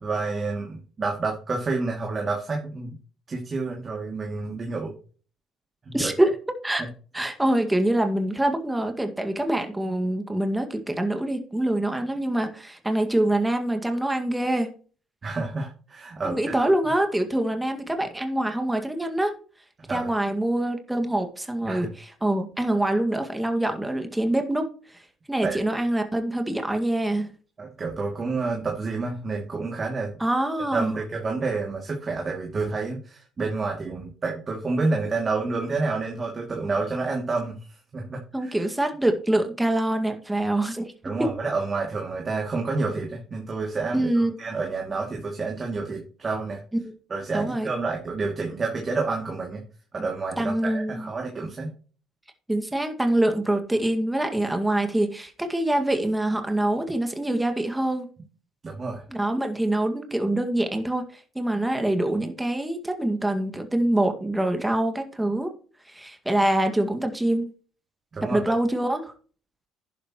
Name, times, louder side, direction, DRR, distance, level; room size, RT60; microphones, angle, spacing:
voice 1, 0.0-3.0 3.3-4.9 5.8-6.3 6.8-6.9 15.2-16.7 19.8-20.1 21.7-21.9 25.4-25.6 27.6-30.1 30.7-38.7 41.0-46.6 47.1-49.6 49.9-51.7 58.6-59.0 68.1-68.4, right 3 dB, 35° right, 0 dB, 2.5 m, -29 dB
voice 2, 5.9-6.3 6.6-6.8 7.1-14.7 16.2-19.3 19.9-24.7 25.3-27.3 30.2-31.0 38.3-40.9 43.9-44.4 46.8-46.9 47.3-47.7 50.0-50.1 50.4-51.1 52.5-58.1 59.1-65.5 65.9-67.5 68.3-69.1, right 1 dB, 10° right, 5 dB, 2.0 m, -25 dB
11.0 x 10.0 x 3.1 m, 0.40 s
hypercardioid pair, 60°, 0 cm